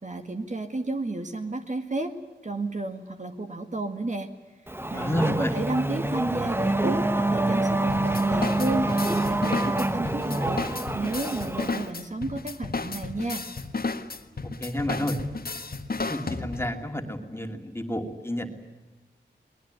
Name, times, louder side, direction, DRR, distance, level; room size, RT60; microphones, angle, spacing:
voice 1, 0.0-2.1 2.4-4.3 4.9-10.6 10.9-13.5, right 2 dB, 40° right, 6 dB, 1.9 m, -32 dB
Race car auto racing / Accelerating revving vroom, 4.7-11.9, right 2 dB, 10° right, 1.0 m, -26 dB
voice 2, 4.9-5.5 14.6-15.2 16.1-18.5, equal, 15° left, 4 dB, 2.7 m, -30 dB
sound 1, 7.9-16.8, left 3 dB, 50° left, 1.7 m, -33 dB
22.5 x 20.0 x 9.6 m, 1.2 s
wide cardioid pair, 95°, 19 cm